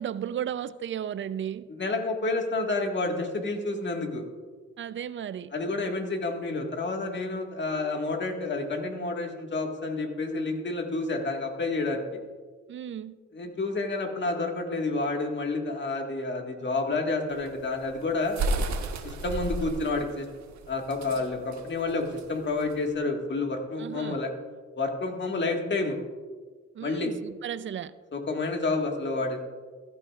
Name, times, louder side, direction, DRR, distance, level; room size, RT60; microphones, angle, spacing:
voice 1, 0.0-1.7 4.8-5.5 12.7-13.2 23.8-24.2 26.7-27.9, right 9 dB, 40° right, 15 dB, 0.5 m, -34 dB
voice 2, 1.7-4.3 5.5-12.0 13.3-18.4 19.0-20.3 20.7-24.3 24.8-26.0 26.8-27.1 28.1-29.4, left 3 dB, 35° left, 3 dB, 1.7 m, -29 dB
sound 1, 17.3-22.9, right 2 dB, 65° right, 1.3 m, -33 dB
15.0 x 12.5 x 2.4 m, 1.5 s
cardioid pair, 90°, 30 cm